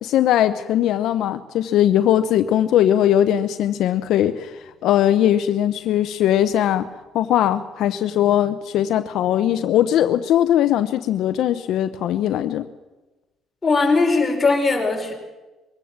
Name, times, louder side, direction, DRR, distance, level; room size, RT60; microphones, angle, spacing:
voice 1, 0.0-4.6 4.8-6.9 7.1-12.7, left 11 dB, 75° left, 10 dB, 0.7 m, -19 dB
voice 2, 13.6-15.1, left 3 dB, 20° left, 0 dB, 4.6 m, -19 dB
21.5 x 17.0 x 7.4 m, 1.1 s
cardioid pair, 120°, 0 cm